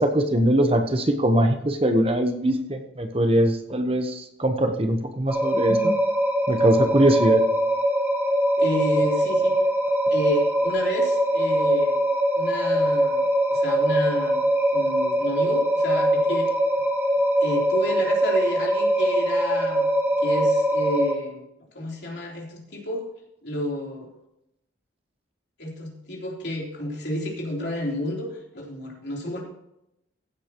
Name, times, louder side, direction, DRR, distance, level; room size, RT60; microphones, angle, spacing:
voice 1, 0.0-5.9 6.5-7.4, right 1 dB, 30° right, 6 dB, 1.0 m, -22 dB
sound 1, 5.3-21.1, right 1 dB, 10° right, 1.5 m, -22 dB
voice 2, 8.6-9.6 10.1-12.0 12.4-13.2 13.5-16.5 17.4-19.9 20.2-21.4 21.8-23.0 23.4-24.1 25.6-28.3 28.5-29.4, equal, 60° left, -1 dB, 3.5 m, -30 dB
15.5 x 8.5 x 3.0 m, 0.81 s
head